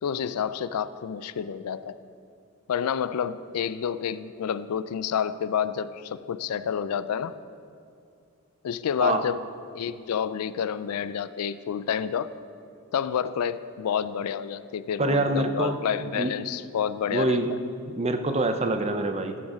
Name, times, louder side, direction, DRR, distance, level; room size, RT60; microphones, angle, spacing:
voice 1, 0.0-2.0 2.7-7.4 8.6-9.4 9.7-12.3 12.9-17.6, left 8 dB, 90° left, 14 dB, 0.4 m, -29 dB
voice 2, 15.0-15.8 16.1-16.3 17.1-17.5 17.9-19.4, right 2 dB, 30° right, 7 dB, 0.5 m, -25 dB
13.0 x 6.3 x 5.0 m, 2.5 s
head